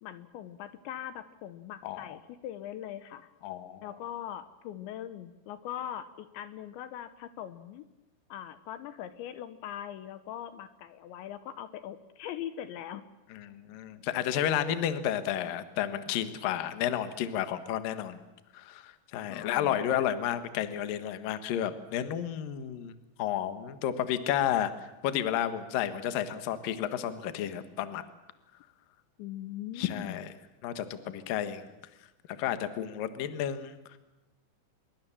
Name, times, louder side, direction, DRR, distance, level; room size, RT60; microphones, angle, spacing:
voice 1, 0.0-3.3 3.8-7.9 8.3-13.0 19.3-20.0 29.2-30.2, left 11 dB, 75° left, 12 dB, 3.1 m, -41 dB
voice 2, 1.8-2.2 3.4-3.8 13.3-18.2 18.5-22.9 23.2-28.0 29.8-30.3 30.6-31.6 32.3-34.0, left 10 dB, 60° left, 10 dB, 2.6 m, -32 dB
26.0 x 22.5 x 7.4 m, 1.0 s
omnidirectional pair, 5.5 m